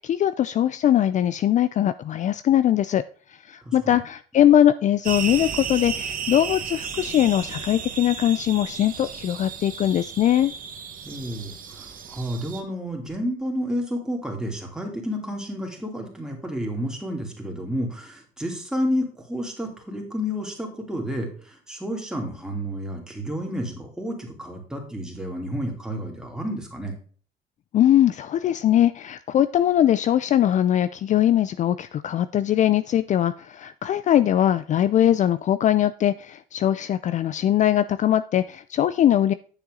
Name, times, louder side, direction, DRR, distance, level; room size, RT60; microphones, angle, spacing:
voice 1, 0.0-3.0 3.5-10.5 27.7-39.3, left 11 dB, 45° left, 14 dB, 0.4 m, -21 dB
voice 2, 3.6-4.0 11.0-26.9, equal, 5° right, 0 dB, 2.9 m, -30 dB
sound 1, 5.0-12.6, right 7 dB, 55° right, 1.4 m, -34 dB
9.0 x 7.0 x 3.8 m, 0.42 s
cardioid pair, 110°, 17 cm